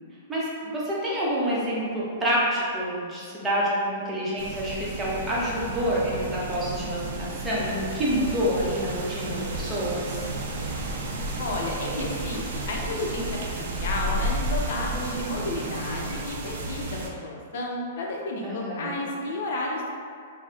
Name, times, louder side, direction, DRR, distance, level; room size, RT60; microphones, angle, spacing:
voice 1, 0.3-10.2 18.4-19.0, equal, 10° right, -7 dB, 0.8 m, -28 dB
sound 1, 4.4-17.1, right 2 dB, 65° right, 0.5 m, -32 dB
voice 2, 11.4-13.4 13.8-19.9, left 2 dB, 65° left, -1 dB, 0.5 m, -32 dB
4.0 x 2.0 x 2.3 m, 2.2 s
hypercardioid pair, 140°, 0 cm